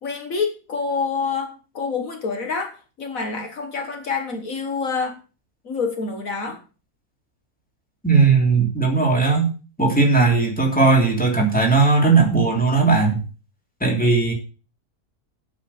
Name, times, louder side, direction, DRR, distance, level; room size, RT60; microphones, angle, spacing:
voice 1, 0.0-5.2 5.6-6.6, left 5 dB, 65° left, 5 dB, 1.9 m, -27 dB
voice 2, 8.0-9.5 9.8-13.2 13.8-14.3, right 4 dB, 5° left, 0 dB, 2.9 m, -17 dB
8.4 x 7.6 x 7.0 m, 0.35 s
omnidirectional pair, 1.5 m